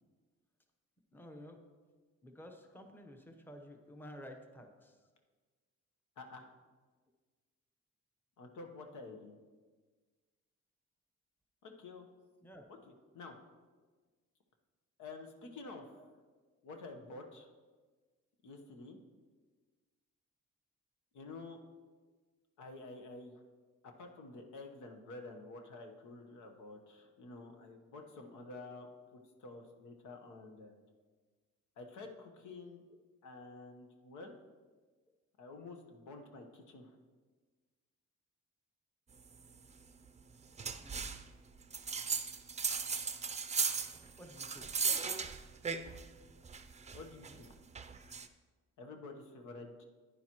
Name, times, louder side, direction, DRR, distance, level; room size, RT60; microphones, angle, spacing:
voice 1, 1.1-1.6 2.2-5.1 12.4-12.6 16.0-16.1 40.8-41.0 44.2-44.7, equal, 5° left, 4 dB, 1.0 m, -52 dB
voice 2, 6.2-6.5 8.4-9.4 11.6-12.1 12.7-13.4 15.0-16.1 16.6-17.5 18.4-19.0 21.1-21.6 22.6-23.3 23.8-30.8 31.8-32.8 33.2-34.3 35.4-37.0 46.9-47.5 48.8-49.9, left 3 dB, 75° left, 4 dB, 1.1 m, -50 dB
sound 1, 40.6-41.2 41.7-46.1 46.4-48.3, right 5 dB, 25° right, 0.5 m, -37 dB
10.5 x 9.8 x 3.0 m, 1.4 s
cardioid pair, 90°, 30 cm